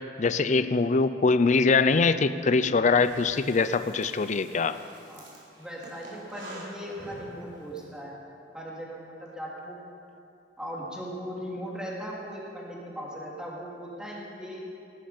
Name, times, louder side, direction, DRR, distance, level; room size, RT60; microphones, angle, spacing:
voice 1, 0.0-4.8, left 4 dB, 40° left, 12 dB, 0.5 m, -23 dB
Breathing, 2.9-7.8, right 1 dB, 80° right, 3.8 m, -47 dB
voice 2, 5.6-8.2 8.5-9.7 10.6-14.6, equal, 5° right, -5 dB, 2.9 m, -38 dB
18.5 x 11.5 x 5.1 m, 2.6 s
head